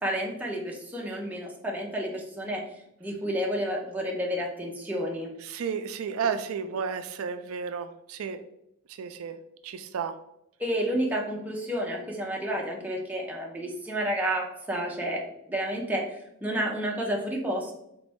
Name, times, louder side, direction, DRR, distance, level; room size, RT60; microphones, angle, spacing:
voice 1, 0.0-2.6 3.0-5.3 10.6-17.7, equal, 10° right, -2 dB, 0.6 m, -30 dB
voice 2, 5.4-8.4 9.0-9.4 9.6-10.2, right 6 dB, 85° right, 9 dB, 0.4 m, -32 dB
4.0 x 3.0 x 3.5 m, 0.78 s
head